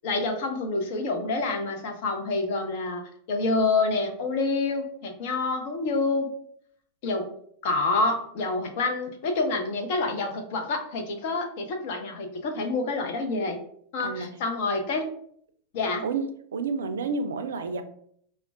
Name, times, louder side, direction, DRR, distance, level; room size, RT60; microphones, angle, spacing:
voice 1, 0.0-3.0 3.3-6.3 7.0-7.3 7.6-13.6 13.9-15.1 15.7-16.0, left 3 dB, 50° left, 4 dB, 0.6 m, -27 dB
voice 2, 14.0-14.3 16.0-17.8, right 4 dB, 65° right, 9 dB, 0.3 m, -30 dB
4.4 x 2.1 x 2.5 m, 0.64 s
figure-of-eight pair, 90°, 0 cm